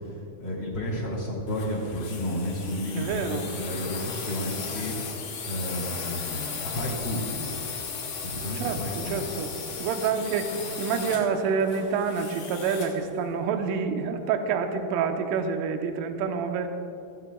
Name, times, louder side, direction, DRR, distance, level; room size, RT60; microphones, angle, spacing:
voice 1, 0.0-4.9 5.5-7.5 8.2-9.2, left 1 dB, 25° left, -7 dB, 1.4 m, -32 dB
sound 1, 1.5-13.0, left 5 dB, 60° left, 3.2 m, -36 dB
voice 2, 3.0-3.5 8.6-9.5 9.8-10.5 10.8-16.7, right 6 dB, 80° right, 5 dB, 3.4 m, -27 dB
24.0 x 15.5 x 2.3 m, 2.7 s
omnidirectional pair, 5.7 m